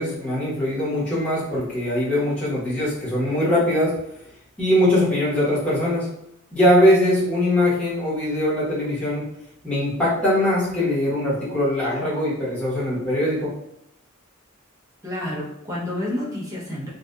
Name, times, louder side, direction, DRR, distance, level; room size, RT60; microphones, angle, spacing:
voice 1, 0.0-3.9 4.6-6.1 6.5-9.2 9.6-13.5, left 1 dB, 5° left, -11 dB, 1.0 m, -21 dB
voice 2, 15.0-16.9, left 1 dB, 15° right, -5 dB, 0.6 m, -29 dB
2.6 x 2.3 x 2.2 m, 0.78 s
head